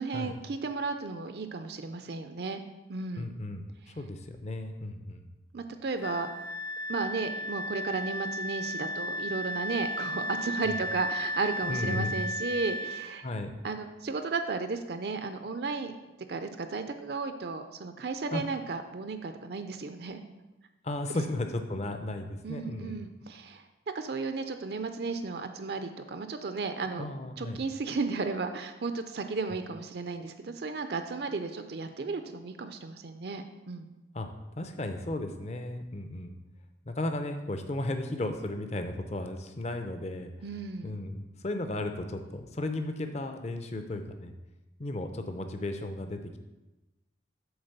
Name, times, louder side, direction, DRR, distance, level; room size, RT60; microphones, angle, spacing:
voice 1, 0.0-2.6 2.9-3.3 5.5-6.5 6.9-13.2 13.6-16.0 16.3-20.2 21.1-21.2 22.4-23.6 23.9-27.1 27.4-33.9 40.4-40.9, right 4 dB, 60° right, 8 dB, 0.5 m, -34 dB
voice 2, 3.2-5.3 10.7-10.8 11.7-12.1 13.2-13.5 18.3-18.4 20.8-23.0 27.0-27.6 34.1-34.3 34.5-36.3 36.9-40.3 40.8-44.3 44.8-46.4, left 1 dB, 35° left, 6 dB, 0.6 m, -35 dB
Wind instrument woodwind instrument, 6.0-13.1, left 1 dB, 70° left, 0.8 m, -34 dB
8.0 x 3.9 x 6.6 m, 1.0 s
head